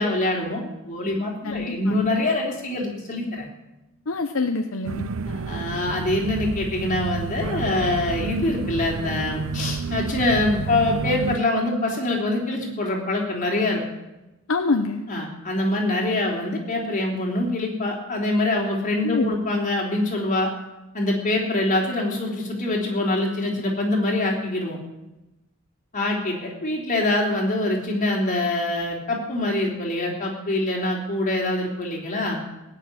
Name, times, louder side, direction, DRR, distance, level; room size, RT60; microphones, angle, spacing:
voice 1, 0.0-3.4 5.2-13.8 15.1-20.5 20.9-24.8 25.9-32.4, left 2 dB, 35° left, -1 dB, 3.4 m, -24 dB
voice 2, 1.4-2.2 4.1-5.1 14.5-15.1 19.0-19.3, left 3 dB, 65° left, 6 dB, 0.8 m, -26 dB
sound 1, 4.8-11.4, right 4 dB, 70° right, 0.5 m, -30 dB
17.0 x 6.6 x 9.5 m, 0.99 s
head